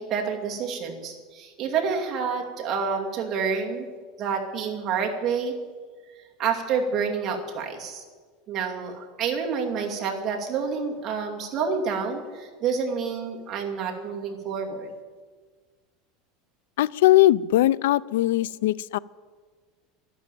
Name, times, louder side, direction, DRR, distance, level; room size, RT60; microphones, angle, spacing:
voice 1, 0.0-3.9 4.2-5.6 6.4-8.0 8.5-14.9, right 6 dB, 35° right, 1 dB, 2.5 m, -28 dB
voice 2, 16.8-19.0, left 15 dB, 90° left, 22 dB, 0.4 m, -20 dB
12.0 x 11.5 x 9.1 m, 1.5 s
supercardioid pair, 150°, 0 cm